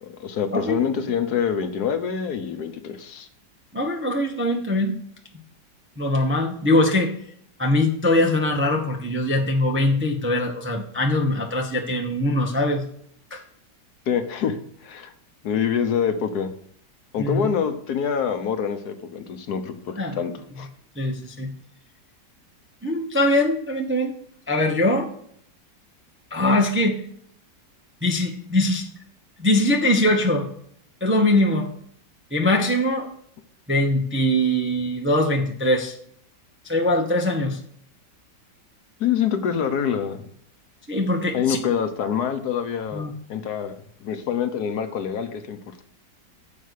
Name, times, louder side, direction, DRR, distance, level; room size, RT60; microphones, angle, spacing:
voice 1, 0.0-3.3 14.1-15.1 15.4-16.5 17.1-20.7 39.0-40.2 41.3-43.7 44.0-45.8, left 7 dB, 65° left, 8 dB, 1.3 m, -26 dB
voice 2, 3.7-4.9 6.0-7.1 7.6-12.8 13.3-13.4 17.2-17.5 20.0-20.2 21.0-21.5 22.8-24.1 24.5-25.1 26.3-27.0 28.0-28.9 29.4-30.5 31.0-31.7 32.3-33.1 33.7-35.9 36.6-37.6 40.9-41.6 42.9-43.1, left 1 dB, 10° right, 1 dB, 0.7 m, -22 dB
7.4 x 5.3 x 6.3 m, 0.64 s
omnidirectional pair, 1.9 m